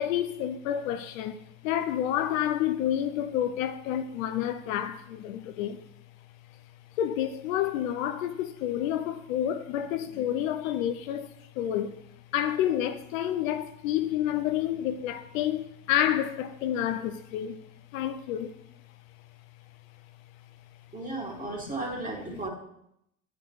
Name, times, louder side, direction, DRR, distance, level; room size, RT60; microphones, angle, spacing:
voice 1, 0.0-5.8 7.0-11.3 11.6-12.0 12.3-17.6 17.9-18.6, left 11 dB, 65° left, 0.6 m, -29 dB
voice 2, 20.9-22.5, right 2 dB, 20° right, 2.1 m, -34 dB
9.7 x 5.0 x 3.1 m
hypercardioid pair, 80°, 42 cm